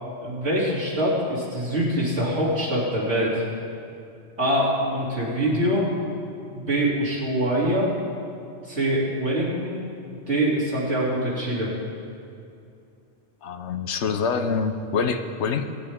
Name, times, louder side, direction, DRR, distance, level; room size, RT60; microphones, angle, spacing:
voice 1, 0.2-3.4 4.4-5.8 6.5-7.9 8.7-9.8 10.3-11.7, right 1 dB, 65° right, -6 dB, 3.4 m, -24 dB
voice 2, 13.4-15.7, left 5 dB, 75° left, 9 dB, 1.0 m, -26 dB
20.0 x 9.9 x 3.6 m, 2.6 s
omnidirectional pair, 1.2 m